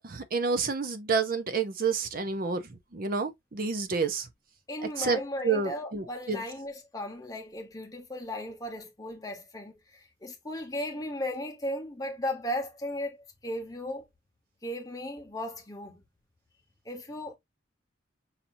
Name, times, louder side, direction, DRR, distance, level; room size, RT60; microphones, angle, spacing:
voice 1, 0.0-2.6 2.9-4.3 5.0-5.2 5.4-6.4, right 5 dB, 50° right, 0.6 m, -29 dB
voice 2, 4.7-14.0 14.6-16.0 16.8-17.4, left 1 dB, 20° left, 1.0 m, -36 dB
5.7 x 2.7 x 2.6 m
head